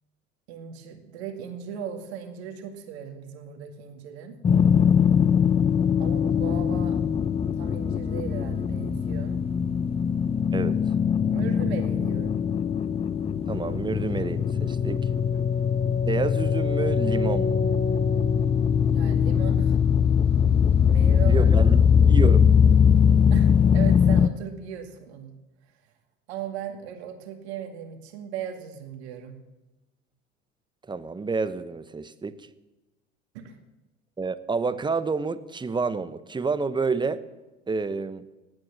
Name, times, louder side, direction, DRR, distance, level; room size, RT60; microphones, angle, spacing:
voice 1, 0.5-4.4 6.0-7.0 7.5-9.4 11.3-12.4 18.9-19.8 20.9-21.5 23.3-25.3 26.3-29.4 33.3-33.6, right 8 dB, 65° right, 4 dB, 2.2 m, -37 dB
sound 1, 4.4-24.3, left 7 dB, 15° left, 0.6 m, -21 dB
voice 2, 13.5-15.1 16.1-17.6 21.2-22.4 30.9-32.4 34.2-37.2 37.7-38.3, right 4 dB, 15° right, 13 dB, 1.0 m, -29 dB
19.0 x 9.0 x 7.4 m, 1.0 s
figure-of-eight pair, 70°, 34 cm